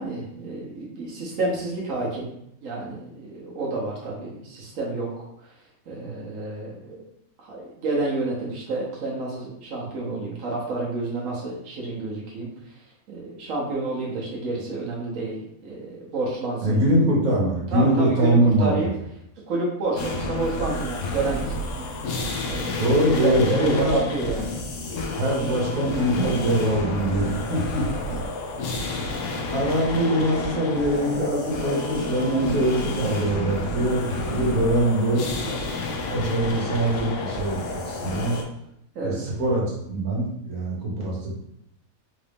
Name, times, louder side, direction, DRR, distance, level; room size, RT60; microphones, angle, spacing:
voice 1, 0.0-2.3 2.6-5.3 5.9-7.0 7.4-12.5 13.1-16.8 17.7-18.9 19.5-21.9 22.5-24.6 38.9-39.4, right 2 dB, 70° right, -4 dB, 1.2 m, -29 dB
voice 2, 16.6-18.9 22.8-24.0 25.2-27.8 28.1-28.2 29.2-35.7 36.1-38.4 39.0-41.4, right 1 dB, 85° right, -3 dB, 1.5 m, -23 dB
sound 1, 20.0-38.4, left 2 dB, 70° left, 0.9 m, -30 dB
3.9 x 2.5 x 3.4 m, 0.78 s
omnidirectional pair, 1.5 m